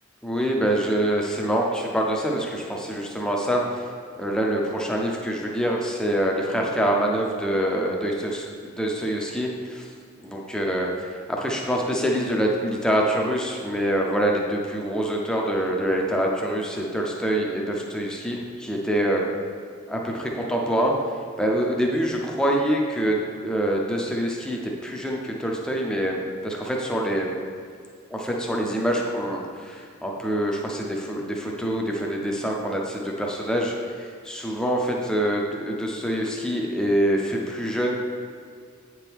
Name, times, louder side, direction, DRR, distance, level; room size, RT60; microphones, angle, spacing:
voice 1, 0.2-9.9 10.2-19.2 19.9-20.9 21.4-27.3 28.1-37.9, right 1 dB, 5° left, -1 dB, 0.5 m, -25 dB
8.2 x 4.6 x 3.5 m, 2.1 s
head